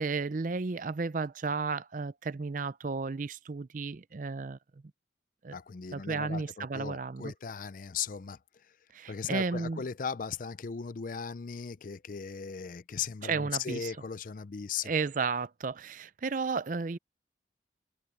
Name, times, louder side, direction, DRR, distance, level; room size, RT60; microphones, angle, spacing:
voice 1, 0.0-4.6 5.4-5.6 5.9-7.3 8.9-9.8 13.2-14.0 14.8-17.0, right 4 dB, 45° right, 0.5 m, -33 dB
voice 2, 5.5-8.4 9.1-14.9, left 6 dB, 45° left, 0.4 m, -37 dB
head